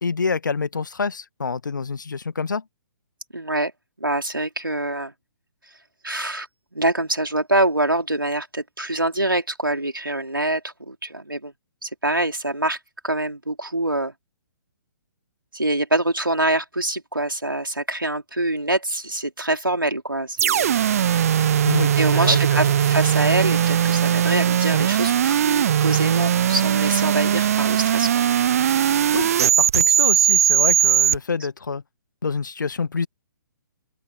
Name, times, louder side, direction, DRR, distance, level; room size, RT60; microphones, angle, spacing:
voice 1, 0.0-2.6 21.6-22.7 29.1-29.3 29.6-31.8 32.2-33.1, left 5 dB, 65° left, 1.7 m, -27 dB
voice 2, 3.3-3.7 4.0-5.1 6.0-6.5 6.7-11.5 11.8-12.8 13.0-14.1 15.5-20.9 22.0-28.2, right 1 dB, 80° right, 4.3 m, -25 dB
sound 1, 20.4-31.2, right 9 dB, 45° right, 1.3 m, -19 dB
open air
figure-of-eight pair, 130°, 11 cm